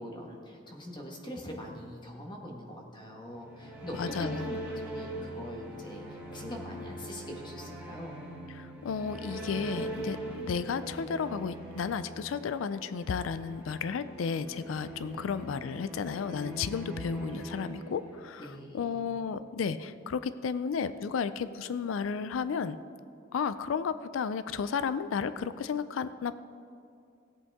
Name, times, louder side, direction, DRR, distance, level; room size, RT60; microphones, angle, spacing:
voice 1, 0.0-8.2 15.1-15.2 18.4-19.1, equal, 25° left, 0 dB, 1.5 m, -43 dB
sound 1, 3.3-18.5, right 1 dB, 10° right, 1.7 m, -41 dB
voice 2, 4.0-4.5 8.5-22.8 23.3-26.3, left 6 dB, 85° left, 13 dB, 0.4 m, -33 dB
17.0 x 8.2 x 3.6 m, 2.4 s
head